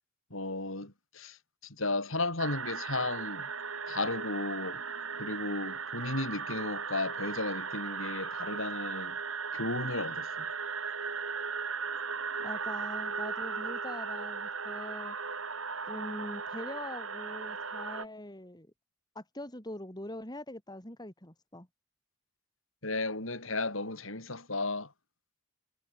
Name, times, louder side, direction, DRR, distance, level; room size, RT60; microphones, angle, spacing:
voice 1, 0.3-1.4 1.6-3.5 3.9-4.8 5.2-9.2 9.5-10.5 22.8-24.9, left 2 dB, 65° left, 6.9 m, -34 dB
sound 1, 2.4-18.1, right 5 dB, 70° right, 6.1 m, -37 dB
voice 2, 12.4-15.2 15.9-18.7 19.1-21.7, left 1 dB, 20° left, 4.3 m, -43 dB
head